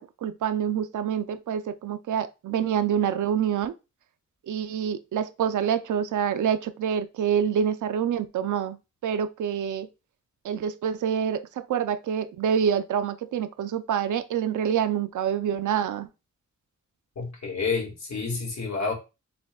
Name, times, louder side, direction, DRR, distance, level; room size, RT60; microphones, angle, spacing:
voice 1, 0.0-3.7 4.5-8.8 9.0-9.9 10.4-16.1, right 8 dB, 85° right, 0.5 m, -26 dB
voice 2, 17.2-18.9, left 4 dB, 65° left, 1.9 m, -29 dB
6.8 x 3.1 x 2.3 m
wide cardioid pair, 175°, 29 cm